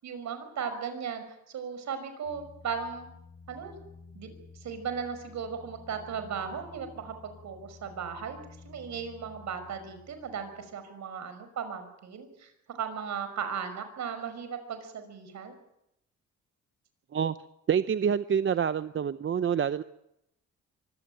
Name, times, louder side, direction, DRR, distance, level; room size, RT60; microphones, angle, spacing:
voice 1, 0.0-3.1 3.5-3.7 4.1-4.3 4.6-8.4 8.6-12.5 12.8-15.5, right 6 dB, 65° right, 9 dB, 5.5 m, -36 dB
sound 1, 2.2-10.9, left 4 dB, 90° left, 4.4 m, -52 dB
voice 2, 17.7-19.8, right 7 dB, 40° right, 13 dB, 0.8 m, -27 dB
24.0 x 16.5 x 9.2 m, 0.82 s
cardioid pair, 90°, 30 cm